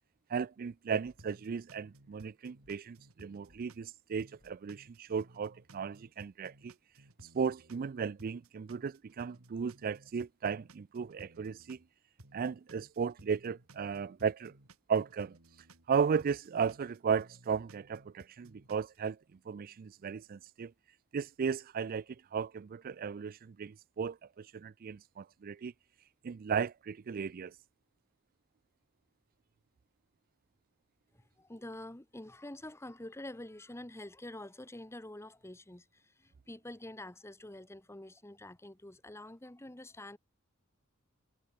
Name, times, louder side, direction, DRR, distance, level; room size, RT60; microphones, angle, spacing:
voice 1, 0.3-6.7 7.3-11.8 12.3-14.5 14.9-15.4 15.9-19.2 19.5-20.7 21.1-25.7 26.2-27.6, right 6 dB, 45° right, 0.4 m, -35 dB
sound 1, 1.0-1.3 2.6-2.9 3.5-3.7 4.4-4.7, left 1 dB, 35° left, 1.8 m, -68 dB
sound 2, 1.1-3.9 4.2-7.9 8.2-11.9 12.2-15.9 16.2-19.0, right 2 dB, 85° right, 2.7 m, -58 dB
voice 2, 31.1-40.2, left 1 dB, 10° left, 1.2 m, -47 dB
head